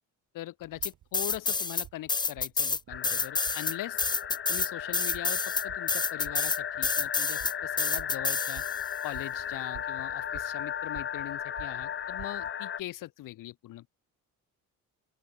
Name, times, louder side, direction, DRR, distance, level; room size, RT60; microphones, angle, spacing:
voice 1, 0.3-4.0 4.5-8.6 9.0-13.9, left 15 dB, 75° left, 1.4 m, -41 dB
sound 1, 0.6-12.5, right 13 dB, 65° right, 1.9 m, -52 dB
sound 2, 0.8-8.9, left 4 dB, 15° left, 0.5 m, -29 dB
sound 3, 2.9-12.8, left 8 dB, 35° left, 1.0 m, -35 dB
open air
cardioid pair, 160°, 33 cm